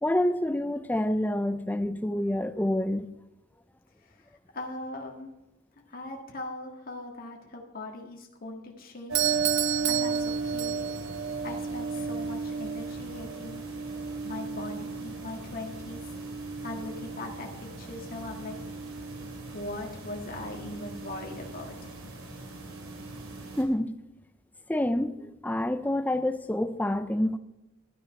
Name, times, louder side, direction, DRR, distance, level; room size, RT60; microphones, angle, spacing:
voice 1, 0.0-3.1 23.6-24.0 24.7-27.4, left 1 dB, 10° left, 0.5 m, -27 dB
voice 2, 4.0-5.3 5.9-9.3 9.8-10.8 11.4-13.6 14.2-16.1 16.6-18.6 19.5-21.9, left 2 dB, 45° left, 1.7 m, -40 dB
sound 1, 9.1-23.6, right 4 dB, 85° right, 2.7 m, -35 dB
Doorbell, 9.2-11.2, right 16 dB, 60° right, 0.5 m, -30 dB
12.5 x 9.6 x 5.2 m
head